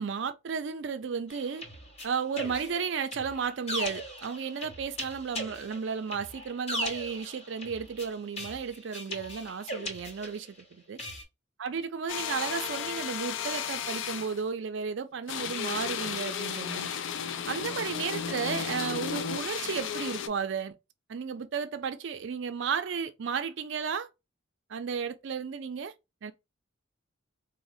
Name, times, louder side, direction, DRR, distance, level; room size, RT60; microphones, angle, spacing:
voice 1, 0.0-1.6 2.0-11.0 11.6-16.9 17.5-20.8 21.1-24.1 24.7-25.9 26.2-26.3, right 6 dB, 65° right, 0.4 m, -33 dB
sound 1, 1.3-10.6 11.0-11.2, equal, 30° left, 0.8 m, -39 dB
sound 2, 12.1-14.4 15.3-20.3, left 7 dB, 70° left, 0.4 m, -34 dB
3.9 x 2.0 x 2.6 m
head